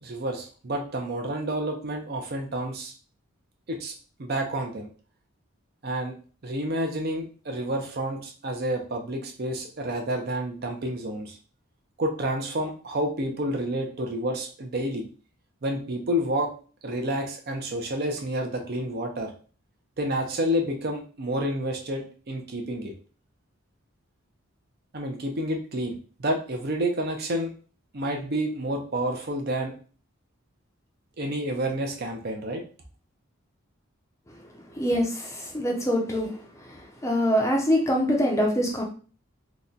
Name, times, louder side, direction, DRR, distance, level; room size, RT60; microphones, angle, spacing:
voice 1, 0.0-2.9 3.7-3.9 4.2-4.9 5.8-6.1 6.4-11.4 12.0-15.1 15.6-16.5 16.8-19.3 20.0-22.9 24.9-27.5 27.9-29.7 31.2-32.6, right 1 dB, 50° right, 3 dB, 0.6 m, -29 dB
voice 2, 34.8-36.4 36.6-38.8, equal, 15° left, -1 dB, 0.5 m, -24 dB
2.9 x 2.1 x 3.8 m, 0.39 s
head